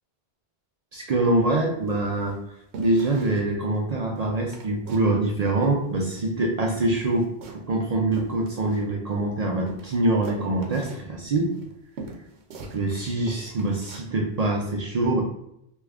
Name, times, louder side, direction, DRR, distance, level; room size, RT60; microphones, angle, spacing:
voice 1, 0.9-2.4 2.8-11.5 12.7-15.2, right 2 dB, 60° right, 0 dB, 0.4 m, -24 dB
sound 1, 1.3-1.5 1.9-2.4 2.7-3.5 3.8-3.9 4.2-5.2 5.4-6.4 6.7-9.2 9.7-13.0 13.3-14.1 14.5-14.7, right 2 dB, 75° right, 0.9 m, -42 dB
3.0 x 2.4 x 3.3 m, 0.79 s
omnidirectional pair, 1.1 m